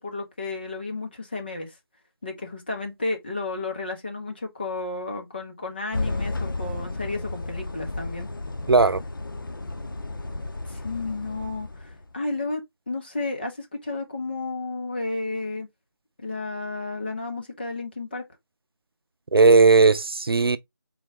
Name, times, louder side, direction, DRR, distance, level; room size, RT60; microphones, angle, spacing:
voice 1, 0.0-1.7 2.2-8.3 10.7-15.7 16.2-18.2, left 3 dB, 25° left, 0.9 m, -32 dB
sound 1, 5.9-12.1, left 2 dB, 55° left, 0.8 m, -33 dB
voice 2, 8.7-9.0 19.3-20.6, right 4 dB, 70° right, 0.5 m, -16 dB
4.0 x 3.0 x 4.4 m
figure-of-eight pair, 170°, 13 cm